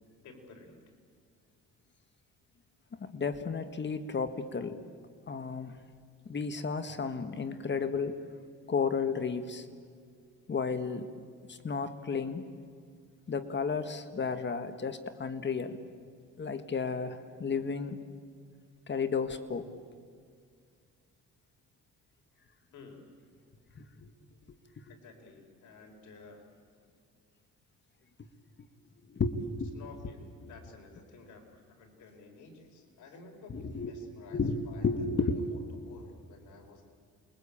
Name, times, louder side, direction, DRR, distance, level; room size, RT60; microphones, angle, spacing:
voice 1, 0.2-0.8 22.7-23.1 24.9-26.5 29.7-34.9 35.2-36.8, left 4 dB, 75° left, 3 dB, 4.8 m, -53 dB
voice 2, 2.9-4.8 5.3-5.8 6.2-8.2 8.7-9.7 10.5-11.1 11.5-12.5 13.3-15.8 16.4-18.0 18.9-19.7 23.7-24.1 29.1-29.7 30.0-30.1 33.5-33.9 34.3-35.5, left 5 dB, 35° left, 10 dB, 1.6 m, -33 dB
28.5 x 22.5 x 8.7 m, 2.1 s
cardioid pair, 90°, 30 cm